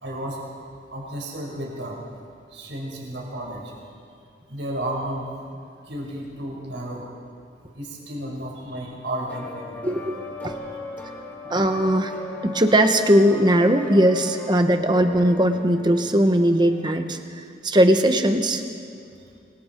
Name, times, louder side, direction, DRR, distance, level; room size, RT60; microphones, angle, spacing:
voice 1, 0.0-0.4 0.9-2.0 2.5-3.7 4.5-5.4 5.9-7.0 7.7-9.8, right 1 dB, 80° right, -1 dB, 5.2 m, -32 dB
sound 1, 9.3-16.9, left 2 dB, 10° left, 2.4 m, -38 dB
voice 2, 9.8-10.1 10.4-10.5 11.5-12.1 12.4-18.6, right 1 dB, 25° right, 7 dB, 1.2 m, -19 dB
26.0 x 24.0 x 4.6 m, 2.3 s
head